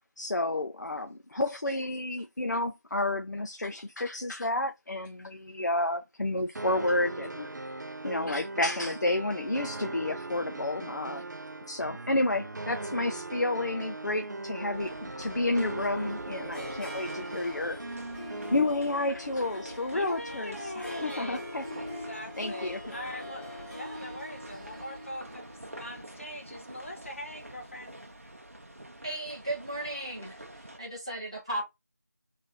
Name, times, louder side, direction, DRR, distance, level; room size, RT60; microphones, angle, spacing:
voice 1, 0.2-7.5 8.0-11.2 11.7-17.8 18.5-21.6 21.9-22.1 22.4-22.9, left 2 dB, 80° left, 0.6 m, -30 dB
sound 1, 6.6-18.6, right 2 dB, 80° right, 0.4 m, -39 dB
sound 2, 14.7-30.8, right 1 dB, 50° right, 0.7 m, -47 dB
Harp, 15.8-28.0, left 1 dB, 20° left, 1.6 m, -44 dB
voice 2, 19.9-21.4 21.8-27.9, left 1 dB, 45° left, 1.1 m, -41 dB
voice 3, 29.0-30.4 30.8-31.6, right 1 dB, 20° right, 0.9 m, -35 dB
3.3 x 2.7 x 3.9 m
figure-of-eight pair, 180°, 9 cm